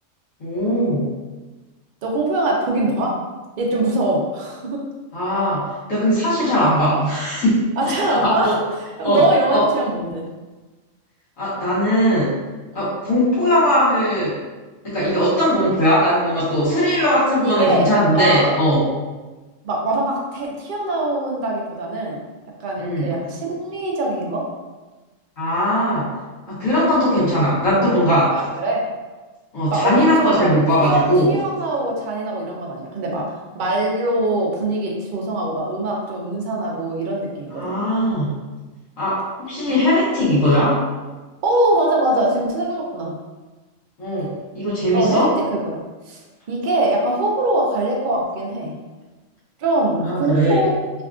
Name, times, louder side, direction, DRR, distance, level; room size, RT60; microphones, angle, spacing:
voice 1, 0.4-1.1 5.1-8.6 9.0-9.2 9.5-9.6 11.4-12.3 12.7-14.4 14.8-18.9 22.8-23.1 25.4-26.1 26.5-28.4 29.5-31.3 37.6-38.3 39.0-40.8 44.0-45.3 50.0-50.7, equal, 85° left, -9 dB, 1.7 m, -19 dB
voice 2, 2.0-3.1 3.6-4.8 7.8-8.5 9.0-10.3 12.7-12.9 15.1-15.3 17.4-18.5 19.6-22.2 22.6-24.4 28.3-28.8 29.7-30.5 30.8-33.3 33.5-37.7 41.4-43.1 44.9-46.2 46.5-48.7 49.6-50.7, right 1 dB, 55° right, -2 dB, 0.5 m, -22 dB
3.5 x 2.3 x 2.4 m, 1.2 s
omnidirectional pair, 1.4 m